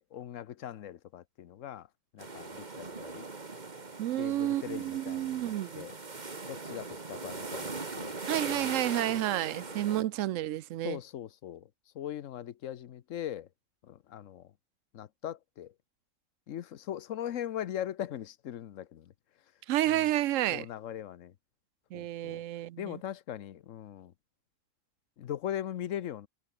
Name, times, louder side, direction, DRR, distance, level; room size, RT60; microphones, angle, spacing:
voice 1, 0.0-1.9 2.1-3.2 4.2-5.9 6.5-8.1 8.5-8.7 9.1-9.5 9.9-10.0 10.8-11.7 11.9-13.5 13.8-14.5 14.9-15.7 16.5-19.1 19.9-20.1 20.5-21.3 21.9-22.4 22.8-24.1 25.2-26.3, left 11 dB, 80° left, 1.2 m, -40 dB
sound 1, 2.2-10.0, right 3 dB, 35° right, 1.9 m, -40 dB
voice 2, 4.0-5.9 8.3-11.0 19.7-20.7 21.9-23.0, right 14 dB, 85° right, 1.0 m, -30 dB
omnidirectional pair, 1.3 m